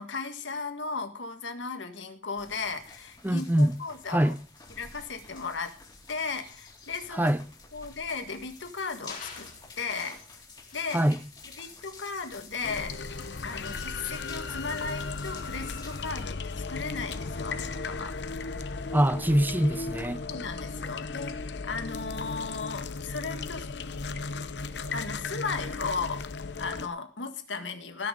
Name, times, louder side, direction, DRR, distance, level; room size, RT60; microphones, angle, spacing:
voice 1, 0.0-4.3 4.8-5.8 6.1-7.3 7.7-9.5 9.8-10.2 10.7-11.0 11.6-13.0 13.4-18.2 20.2-23.7 24.9-26.2 26.6-28.1, left 4 dB, 85° left, 1.8 m, -36 dB
sound 1, 2.3-16.2, left 4 dB, 25° left, 3.9 m, -50 dB
voice 2, 3.2-3.7 4.1-4.4 7.1-7.4 10.9-11.2 18.9-20.2, equal, 10° right, 0.6 m, -23 dB
sound 2, 9.1-10.3 10.7-11.0 11.5-11.7, left 5 dB, 50° left, 4.9 m, -46 dB
sound 3, 12.6-26.9, left 4 dB, 65° left, 0.8 m, -36 dB
18.5 x 6.7 x 5.2 m
head